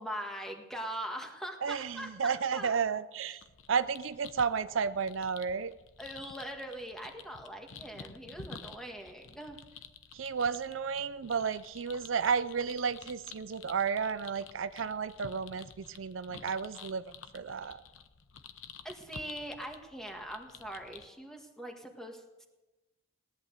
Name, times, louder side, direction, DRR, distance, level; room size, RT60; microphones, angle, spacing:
voice 1, 0.0-2.8 6.0-9.6 18.8-22.5, right 1 dB, ahead, 3 dB, 1.8 m, -42 dB
voice 2, 1.6-3.4 3.7-5.7 10.1-17.8, right 6 dB, 75° right, 14 dB, 0.5 m, -32 dB
sound 1, 3.4-21.1, left 6 dB, 85° left, 0.9 m, -51 dB
17.5 x 11.0 x 6.6 m, 1.1 s
head